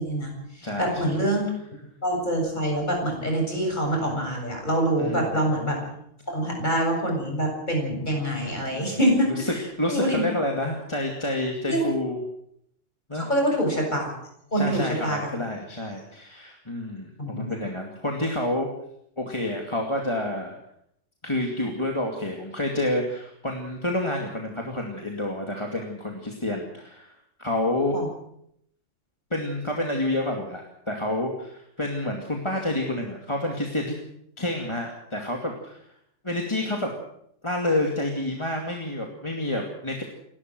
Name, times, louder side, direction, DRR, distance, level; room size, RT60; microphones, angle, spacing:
voice 1, 0.0-1.5 2.0-5.8 6.3-9.3 9.9-10.3 11.7-11.9 13.1-14.1 14.5-15.3 17.2-17.5 27.9-28.1, right 1 dB, 40° left, 1 dB, 7.9 m, -25 dB
voice 2, 0.6-1.1 5.0-5.4 8.7-9.0 9.3-12.2 13.1-13.3 14.5-18.7 19.2-20.6 21.2-28.0 29.3-34.0 34.4-35.8 36.2-36.9 37.4-40.0, left 1 dB, 25° left, 1 dB, 2.5 m, -29 dB
29.0 x 12.5 x 7.8 m, 0.73 s
omnidirectional pair, 1.2 m